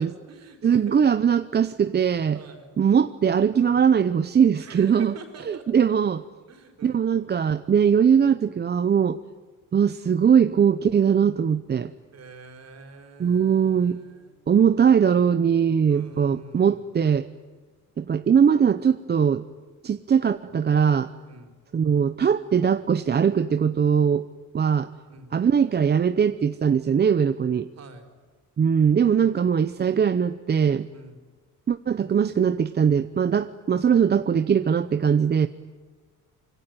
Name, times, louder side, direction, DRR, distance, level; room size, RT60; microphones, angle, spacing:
voice 1, 0.0-1.1 2.3-2.7 4.6-5.9 6.5-7.1 12.1-14.3 15.9-16.9 17.6-17.7 21.2-21.5 25.1-25.3 27.7-28.0 30.9-31.2, right 4 dB, 55° right, 5 dB, 4.8 m, -45 dB
voice 2, 0.6-2.4 2.8-5.1 5.5-6.2 6.8-9.2 9.7-11.9 13.2-14.0 14.5-17.3 18.0-19.4 19.8-21.1 21.7-24.2 24.5-24.9 25.3-27.7 28.6-30.9 31.7-35.5, right 7 dB, 30° right, 11 dB, 0.8 m, -21 dB
26.0 x 23.5 x 9.5 m, 1.4 s
cardioid pair, 135°, 31 cm